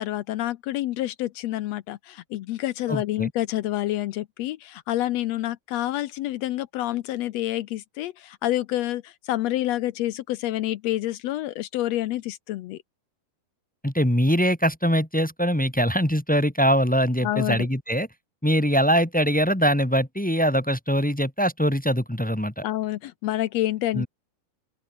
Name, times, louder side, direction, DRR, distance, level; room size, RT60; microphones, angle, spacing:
voice 1, 0.0-12.8 17.2-17.7 22.6-24.1, left 14 dB, 75° left, 1.6 m, -28 dB
voice 2, 2.9-3.3 13.8-18.1 18.4-22.6 23.9-24.1, equal, 5° left, 0.7 m, -22 dB
open air
omnidirectional pair, 3.7 m